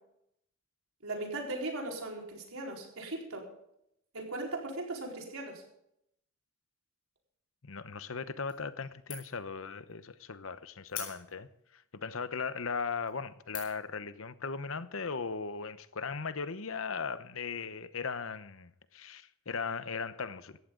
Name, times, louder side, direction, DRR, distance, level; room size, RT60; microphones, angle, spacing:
voice 1, 1.0-3.5 4.1-5.6, right 2 dB, 85° right, 4.5 m, -38 dB
voice 2, 7.7-11.5 11.9-20.6, left 5 dB, 75° left, 0.9 m, -38 dB
sound 1, 8.5-8.8 9.1-9.5 9.9-10.0 10.9-11.6 12.2-12.3 12.9-13.1 13.5-13.9, left 7 dB, 40° left, 6.0 m, -43 dB
17.5 x 14.5 x 3.9 m
head